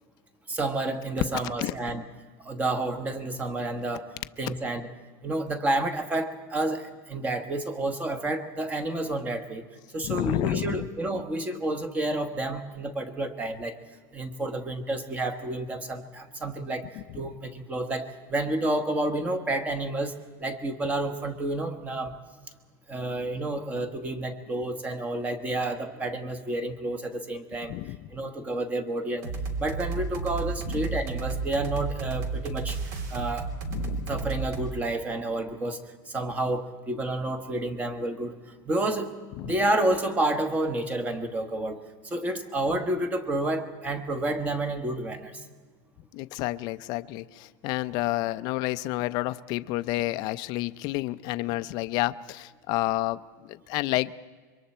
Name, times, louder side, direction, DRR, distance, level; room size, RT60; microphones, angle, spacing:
voice 1, 0.5-2.0 2.4-4.1 4.4-4.9 5.2-9.6 9.9-13.8 14.1-22.1 22.9-27.7 28.1-29.3 29.6-33.5 34.1-38.4 38.6-39.1 39.4-45.4, right 2 dB, 15° right, 8 dB, 1.2 m, -30 dB
voice 2, 10.0-10.9 27.7-28.0 30.7-30.9 33.7-34.1 39.4-39.5 46.1-53.2 53.5-54.1, left 17 dB, 40° left, 12 dB, 0.5 m, -30 dB
sound 1, 29.2-34.7, right 4 dB, 60° right, 3.1 m, -32 dB
26.5 x 23.5 x 4.3 m, 1.4 s
supercardioid pair, 170°, 11 cm